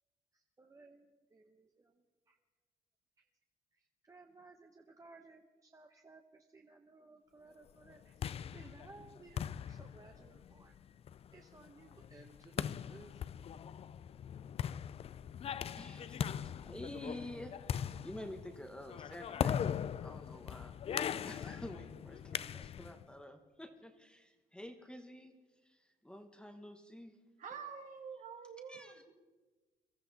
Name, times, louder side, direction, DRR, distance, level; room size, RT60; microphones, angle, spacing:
voice 1, 0.3-2.4 3.2-3.3 3.7-10.8 11.3-13.2, right 3 dB, 20° right, 0.9 m, -59 dB
sound 1, 7.9-23.0, left 8 dB, 35° left, 0.4 m, -40 dB
voice 2, 15.8-25.3 25.6-27.2 28.7-29.0, left 1 dB, 5° left, 1.1 m, -50 dB
voice 3, 27.4-29.0, right 6 dB, 50° right, 1.9 m, -47 dB
23.0 x 13.5 x 4.1 m
cardioid pair, 110°, 17 cm